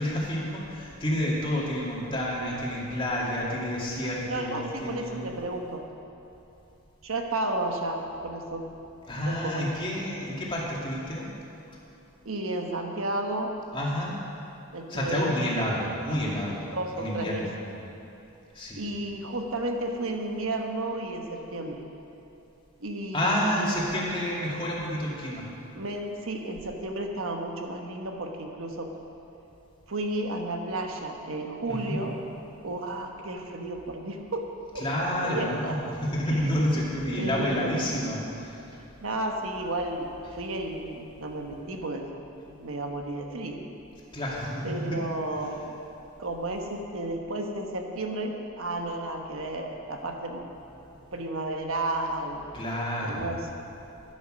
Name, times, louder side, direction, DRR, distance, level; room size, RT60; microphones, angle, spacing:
voice 1, 0.0-5.2 9.1-11.3 13.7-14.2 14.9-16.6 17.0-17.6 18.5-18.8 23.1-25.4 31.7-32.0 34.8-38.8 44.1-45.0 50.8-50.9 52.5-53.3, equal, 25° left, -5 dB, 2.2 m, -29 dB
voice 2, 4.3-5.8 7.0-8.7 9.3-9.7 12.2-13.5 14.7-15.3 16.6-17.5 18.8-21.8 22.8-23.8 25.7-28.9 29.9-32.2 32.6-34.5 34.7-35.7 36.3-36.7 37.1-37.7 39.0-42.1 42.5-43.6 44.6-45.7 46.2-50.4 51.1-52.5 53.0-53.5, right 2 dB, 70° right, 2 dB, 1.2 m, -32 dB
12.0 x 11.0 x 6.3 m, 2.8 s
head